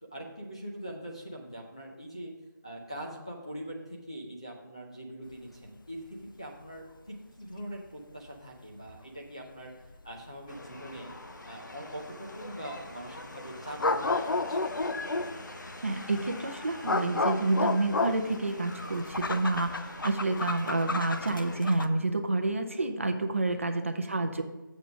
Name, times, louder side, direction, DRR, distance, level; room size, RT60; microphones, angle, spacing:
voice 1, 0.0-2.3 2.6-11.1 11.5-14.6 23.5-23.8, right 1 dB, 15° left, -3 dB, 0.4 m, -43 dB
sound 1, 8.9-9.0 9.9-10.0 13.8-15.4 16.0-21.9, left 3 dB, 80° left, 0.6 m, -31 dB
sound 2, 10.5-21.6, left 2 dB, 60° left, 1.0 m, -44 dB
voice 2, 15.8-24.4, right 2 dB, 40° right, 6 dB, 0.7 m, -29 dB
7.5 x 5.3 x 6.1 m, 1.1 s
figure-of-eight pair, 180°, 11 cm